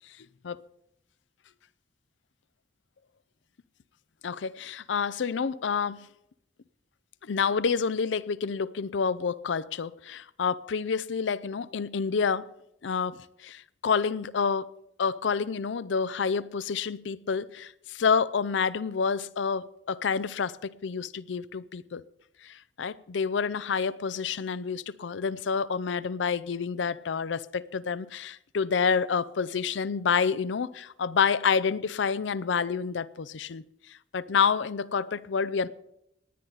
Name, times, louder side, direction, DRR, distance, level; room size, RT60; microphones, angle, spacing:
voice 1, 4.2-6.1 7.2-12.5 12.8-14.7 15.0-22.0 22.4-33.6 34.1-35.7, left 6 dB, 85° left, 0.5 m, -28 dB
18.5 x 10.0 x 4.0 m
head